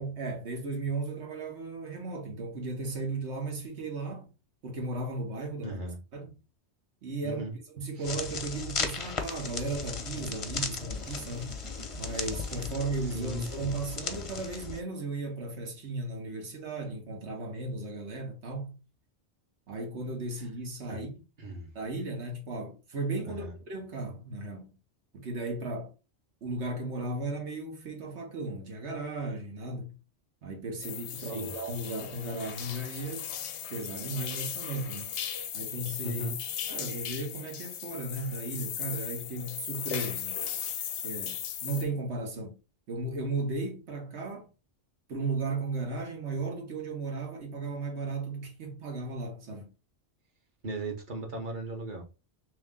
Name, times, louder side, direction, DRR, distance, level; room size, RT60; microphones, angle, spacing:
voice 1, 0.0-4.3 4.6-5.8 6.1-6.3 7.0-11.6 12.0-18.8 19.7-21.2 21.7-24.7 25.1-25.9 26.4-29.9 30.4-33.3 33.7-35.1 35.5-36.3 36.7-40.4 41.0-42.6 42.9-44.5 45.1-49.7, right 3 dB, 85° right, 1.4 m, -35 dB
voice 2, 5.6-6.0 7.2-7.5 8.0-8.1 13.1-13.8 20.9-21.0 21.4-21.7 23.2-23.5 31.2-31.5 32.9-33.1 36.0-36.4 50.6-52.0, right 1 dB, 50° right, 1.1 m, -37 dB
sound 1, 8.0-14.8, left 5 dB, 40° left, 0.5 m, -36 dB
sound 2, 9.2-14.7, right 5 dB, 65° right, 0.8 m, -51 dB
sound 3, 30.8-41.8, left 9 dB, 85° left, 0.9 m, -37 dB
3.1 x 3.1 x 3.5 m
omnidirectional pair, 1.1 m